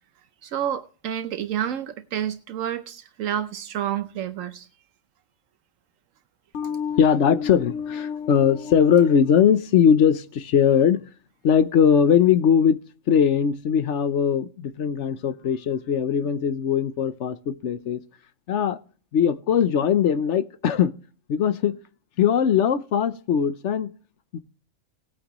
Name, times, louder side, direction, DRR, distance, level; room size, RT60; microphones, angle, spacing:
voice 1, 0.4-4.7, right 10 dB, 80° right, 1.1 m, -29 dB
voice 2, 6.5-11.0 11.4-12.8 13.1-18.0 18.5-18.8 19.1-20.9 21.3-21.8 22.2-23.9 24.3-24.4, left 8 dB, 65° left, 1.1 m, -20 dB
18.5 x 9.0 x 3.0 m
omnidirectional pair, 1.3 m